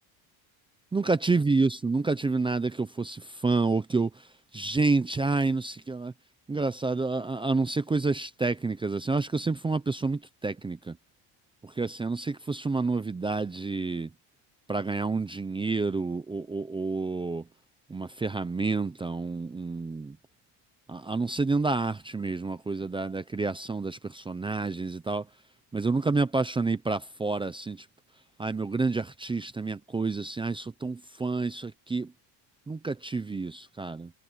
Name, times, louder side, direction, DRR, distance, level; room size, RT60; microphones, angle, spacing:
voice 1, 0.9-6.1 6.5-11.0 11.6-14.1 14.7-17.5 17.9-20.2 20.9-25.3 25.7-27.9 28.4-32.1 32.7-34.1, right 3 dB, 10° right, 0.6 m, -29 dB
cardioid pair, 155°, 48 cm